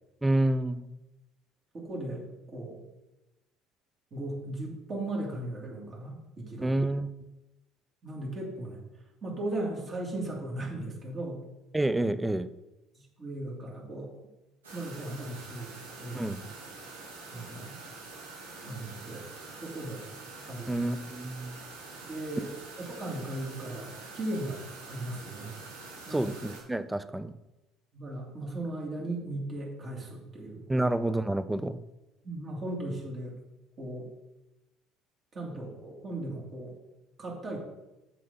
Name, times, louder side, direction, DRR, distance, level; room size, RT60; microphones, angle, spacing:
voice 1, 0.2-0.8 6.6-7.1 11.7-12.5 16.1-16.5 20.7-21.6 26.1-27.3 30.7-31.8, right 1 dB, 10° right, 14 dB, 0.5 m, -28 dB
voice 2, 1.7-2.2 2.5-2.8 4.1-6.8 8.0-8.8 9.2-11.4 12.9-14.1 14.7-16.3 17.3-17.7 18.6-19.3 19.6-20.1 20.4-20.7 22.0-22.5 22.8-24.6 24.9-25.6 26.1-26.3 27.9-30.6 32.2-33.3 33.8-34.1 35.3-36.8 37.2-37.6, right 1 dB, 40° right, -2 dB, 2.5 m, -37 dB
sound 1, 14.6-26.6, right 3 dB, 90° right, 1.7 m, -46 dB
7.5 x 5.7 x 4.0 m, 0.99 s
hypercardioid pair, 60°, 0 cm